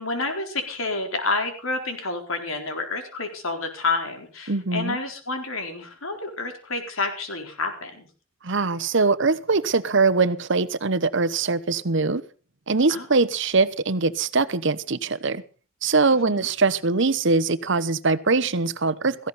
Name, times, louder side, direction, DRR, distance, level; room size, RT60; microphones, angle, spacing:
voice 1, 0.0-8.1 12.9-13.1 16.2-16.5, left 3 dB, 80° left, 4.2 m, -29 dB
voice 2, 4.5-5.0 8.4-12.2 12.7-15.4 15.8-19.2, right 3 dB, 60° right, 1.0 m, -22 dB
17.5 x 15.5 x 4.2 m
head